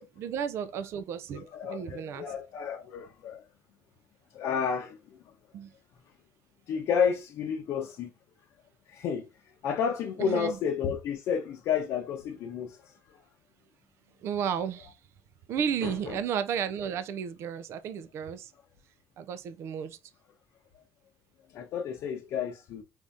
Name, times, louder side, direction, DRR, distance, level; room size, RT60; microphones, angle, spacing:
voice 1, 0.2-2.3 5.5-5.7 10.2-10.6 14.2-15.0 15.5-18.5 19.2-20.0, right 8 dB, 50° right, 0.4 m, -33 dB
voice 2, 1.5-3.4 4.3-5.0 6.7-8.1 8.9-9.3 9.6-13.2 15.8-16.2 21.5-22.8, left 7 dB, 55° left, 0.7 m, -31 dB
4.9 x 2.7 x 3.4 m
cardioid pair, 155°, 6 cm